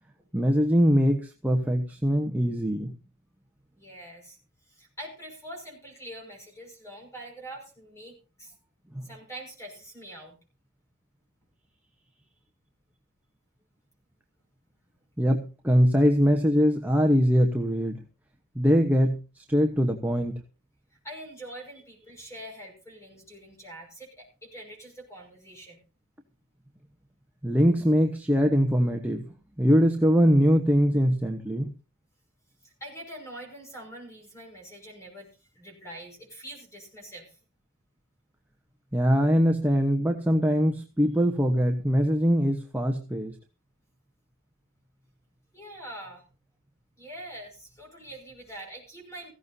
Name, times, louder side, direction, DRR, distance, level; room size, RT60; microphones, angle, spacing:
voice 1, 0.3-2.9 8.9-9.0 15.2-18.0 18.5-19.2 19.5-20.4 27.4-29.2 29.6-31.7 38.9-43.3, equal, 10° right, 2 dB, 1.1 m, -22 dB
voice 2, 3.8-4.4 4.7-8.5 9.0-10.4 20.9-25.8 32.6-37.4 45.5-46.2 47.0-49.3, right 1 dB, 15° left, 1 dB, 5.8 m, -44 dB
17.5 x 15.5 x 2.8 m, 0.34 s
head